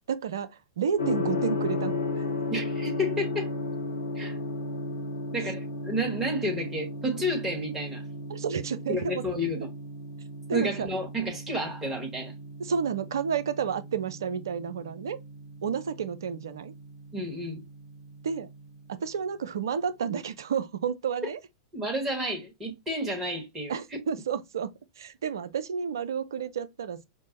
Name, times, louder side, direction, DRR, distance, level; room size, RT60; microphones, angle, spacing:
voice 1, 0.1-2.2 8.3-9.2 10.5-10.9 12.6-15.2 15.6-16.7 18.2-18.5 18.9-21.4 23.7-27.1, right 7 dB, 65° right, 0.4 m, -31 dB
Gong, 1.0-18.8, left 2 dB, 65° left, 0.9 m, -35 dB
voice 2, 2.5-3.5 4.1-4.4 5.3-8.0 8.9-9.7 10.5-12.3 17.1-17.6 21.7-23.8, equal, 15° right, 1.4 m, -31 dB
6.0 x 2.1 x 2.6 m
figure-of-eight pair, 95°, 2 cm